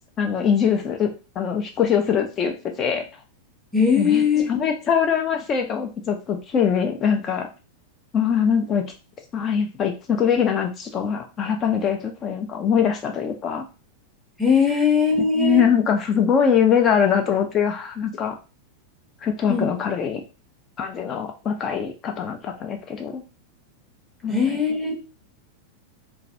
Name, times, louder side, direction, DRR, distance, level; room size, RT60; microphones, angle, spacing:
voice 1, 0.2-1.1 1.4-3.0 4.0-7.5 8.1-8.8 9.3-13.6 15.4-18.4 19.2-20.2 20.8-23.2 24.2-24.6, left 7 dB, 30° left, 4 dB, 0.5 m, -22 dB
voice 2, 3.7-4.7 14.4-15.6 19.5-19.7 24.3-24.9, left 5 dB, 5° right, 1 dB, 0.7 m, -20 dB
2.3 x 2.2 x 2.7 m, 0.31 s
figure-of-eight pair, 90°, 0 cm